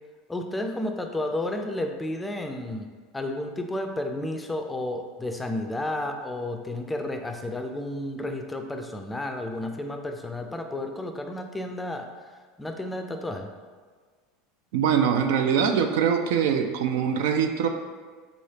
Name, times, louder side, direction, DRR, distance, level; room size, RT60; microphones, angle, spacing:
voice 1, 0.3-2.9 3.1-12.1 12.6-13.5, left 1 dB, 10° left, 5 dB, 0.4 m, -32 dB
voice 2, 14.7-17.7, right 7 dB, 65° right, 6 dB, 0.3 m, -23 dB
3.9 x 3.2 x 2.7 m, 1.5 s
hypercardioid pair, 80°, 0 cm